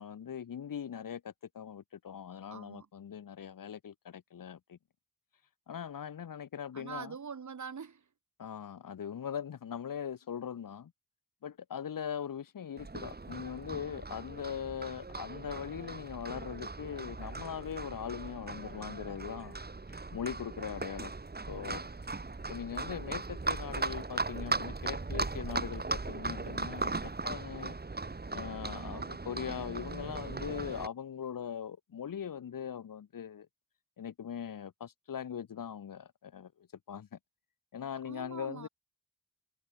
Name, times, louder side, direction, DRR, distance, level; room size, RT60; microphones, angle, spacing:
voice 1, 0.0-4.8 5.7-7.1 8.4-10.9 11.4-19.6 19.9-21.1 21.5-21.8 22.5-27.0 27.2-27.8 28.3-33.5 34.0-36.5 36.9-37.1 37.7-38.7, left 8 dB, 80° left, 1.7 m, -40 dB
voice 2, 2.5-2.9 6.7-8.0 28.7-29.1 38.0-38.7, right 6 dB, 60° right, 3.6 m, -44 dB
Livestock farm animals working animals, 12.8-30.9, right 3 dB, 30° right, 3.3 m, -38 dB
wide cardioid pair, 100°, 33 cm